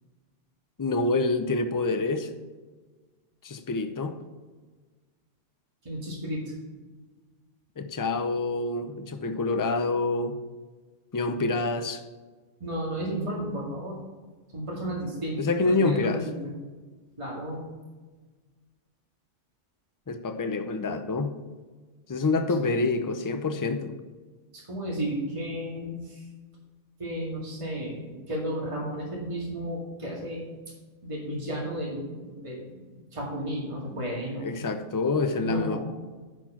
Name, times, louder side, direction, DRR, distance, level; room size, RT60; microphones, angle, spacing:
voice 1, 0.8-2.3 3.4-4.1 7.8-10.4 11.1-12.0 15.4-16.2 20.1-21.3 22.1-23.9 34.4-35.8, left 3 dB, 25° left, 8 dB, 0.4 m, -27 dB
voice 2, 5.8-6.4 12.6-14.0 14.5-16.5 17.2-17.6 24.5-26.2 27.0-30.5 31.0-32.8 33.1-34.6 35.4-35.8, equal, 25° right, -4 dB, 2.1 m, -33 dB
10.0 x 4.5 x 5.9 m, 1.3 s
omnidirectional pair, 1.3 m